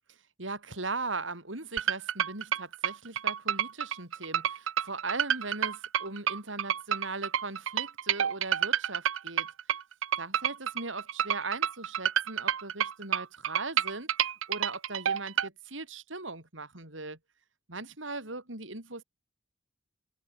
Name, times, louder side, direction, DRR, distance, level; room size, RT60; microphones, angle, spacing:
voice 1, 0.4-9.5 10.2-17.2 17.7-19.0, right 3 dB, 70° right, 5.7 m, -39 dB
sound 1, 1.8-15.5, right 9 dB, 85° right, 0.6 m, -29 dB
head